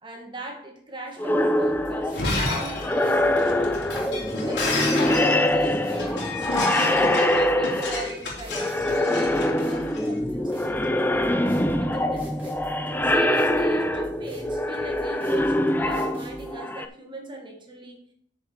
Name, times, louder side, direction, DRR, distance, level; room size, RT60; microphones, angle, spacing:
voice 1, 0.0-3.8 4.4-12.6 13.0-18.0, right 1 dB, 25° right, 1 dB, 2.0 m, -38 dB
sound 1, 1.2-8.2 8.5-16.9, left 1 dB, 10° left, 0.5 m, -24 dB
sound 2, 1.6-16.5, equal, 10° right, 3.2 m, -46 dB
Shatter, 2.0-10.1, left 2 dB, 70° left, 3.4 m, -31 dB
8.2 x 6.7 x 4.7 m, 0.65 s
head